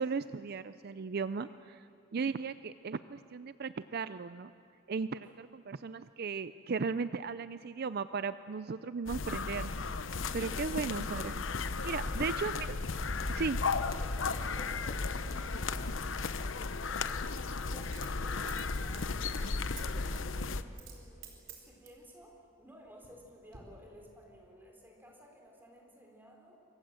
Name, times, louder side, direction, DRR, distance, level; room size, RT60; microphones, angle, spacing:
voice 1, 0.0-1.8 2.1-4.5 4.9-9.7 10.3-11.4 11.8-12.7 13.3-13.6, right 5 dB, 55° right, 13 dB, 0.5 m, -36 dB
sound 1, 9.1-20.6, left 4 dB, 90° left, 0.9 m, -35 dB
voice 2, 11.9-12.4 13.9-19.2 19.6-26.6, equal, 10° right, 1 dB, 4.7 m, -55 dB
Coin (dropping), 15.2-15.3 17.8-19.8 20.1-20.3 20.7-21.0 21.2-22.0 22.7-23.2 23.5-23.6, right 9 dB, 70° right, 4.3 m, -51 dB
27.5 x 23.5 x 7.7 m, 2.7 s
head